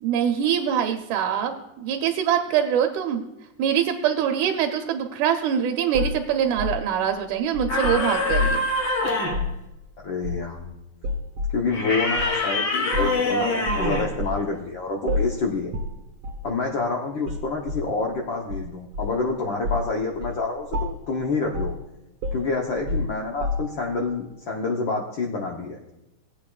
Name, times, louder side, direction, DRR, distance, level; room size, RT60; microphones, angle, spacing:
voice 1, 0.0-3.2 3.6-8.6, right 9 dB, 80° right, 4 dB, 2.1 m, -24 dB
sound 1, 5.9-8.7 9.2-9.6 10.2-10.7 11.0-11.6 12.2-12.3 12.9-13.2 13.7-14.5 15.1-15.4 15.7-16.0 16.2-16.5 17.3-17.9 18.5-19.2 19.6-19.9 20.2-20.4 20.7-21.1 21.5-21.8 22.2-23.9, left 2 dB, 50° right, 1.9 m, -29 dB
sound 2, 7.7-9.5 11.7-14.2, left 2 dB, 50° left, 1.8 m, -25 dB
voice 2, 10.0-10.7 11.5-15.7 16.4-21.7 22.3-25.8, left 3 dB, 70° left, 0 dB, 1.1 m, -28 dB
18.0 x 8.4 x 2.4 m, 0.88 s
omnidirectional pair, 3.5 m